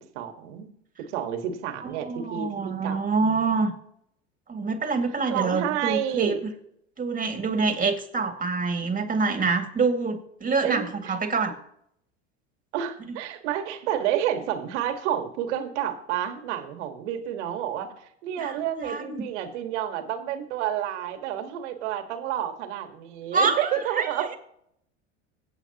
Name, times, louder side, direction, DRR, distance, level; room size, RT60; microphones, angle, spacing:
voice 1, 0.1-0.7 1.0-3.4 5.3-6.4 10.6-11.1 12.7-24.4, right 10 dB, 75° right, 7 dB, 1.8 m, -30 dB
voice 2, 1.8-3.7 4.5-6.5 7.0-11.6 13.0-13.2 18.4-19.3 23.3-24.4, right 4 dB, 25° right, 5 dB, 2.2 m, -26 dB
23.5 x 8.2 x 3.0 m, 0.72 s
hypercardioid pair, 85°, 35 cm